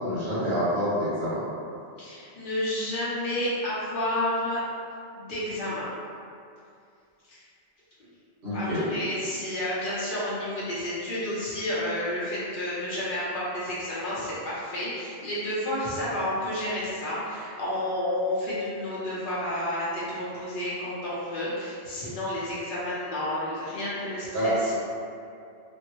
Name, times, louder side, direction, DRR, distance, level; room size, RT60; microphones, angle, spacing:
voice 1, 0.0-1.4 8.4-8.8 24.3-24.7, equal, 70° right, -12 dB, 1.6 m, -27 dB
voice 2, 2.0-4.6 5.2-5.9 7.3-7.4 8.5-24.7, left 1 dB, 55° left, -9 dB, 0.9 m, -30 dB
3.3 x 2.1 x 3.0 m, 2.4 s
omnidirectional pair, 1.1 m